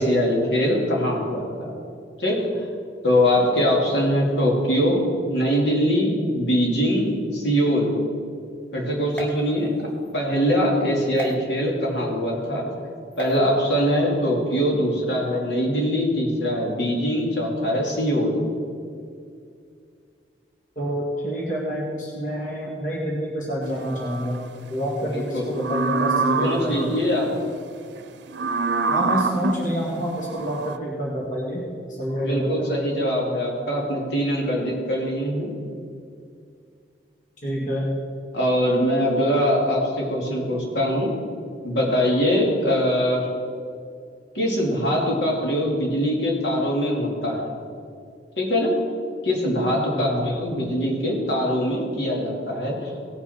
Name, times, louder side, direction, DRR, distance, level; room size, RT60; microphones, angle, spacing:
voice 1, 0.0-1.7 2.2-2.4 3.0-5.0 5.3-7.9 8.7-9.7 10.1-12.7 13.2-18.4 25.1-25.5 26.4-27.3 32.2-35.5 38.3-41.1 41.6-43.3 44.3-47.5 48.4-48.8 49.2-52.9, equal, 70° left, -2 dB, 2.6 m, -22 dB
sound 1, 9.1-10.1 11.2-11.3 13.1-13.4, right 2 dB, 10° left, 1.4 m, -36 dB
voice 2, 20.8-24.4 24.7-27.0 28.9-31.6 32.0-32.7 37.4-38.0 49.9-50.3, equal, 45° left, -4 dB, 2.0 m, -27 dB
sound 2, 23.6-24.4 25.5-27.0 28.3-30.8, right 4 dB, 75° right, 0.6 m, -26 dB
18.0 x 6.1 x 5.8 m, 2.3 s
head